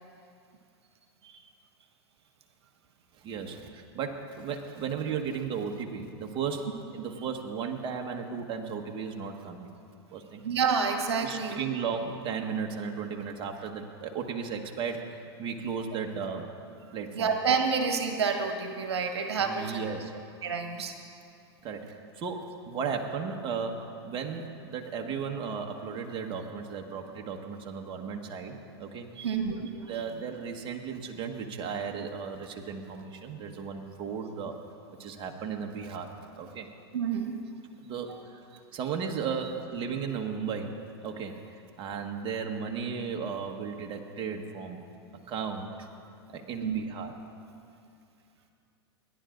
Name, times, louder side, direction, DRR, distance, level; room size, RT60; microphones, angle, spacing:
voice 1, 3.2-9.7 10.1-10.4 11.2-16.5 16.9-17.3 19.4-20.1 21.6-29.1 29.9-34.6 35.0-36.7 37.8-38.4 38.7-44.8 45.3-45.9 46.3-47.1, right 6 dB, 35° right, 2 dB, 1.4 m, -35 dB
voice 2, 10.4-11.6 17.1-19.7 20.4-20.9 29.2-29.7 36.9-37.4 46.6-46.8, right 5 dB, 80° right, 4 dB, 1.3 m, -28 dB
29.5 x 10.5 x 2.6 m, 2.5 s
hypercardioid pair, 100°, 14 cm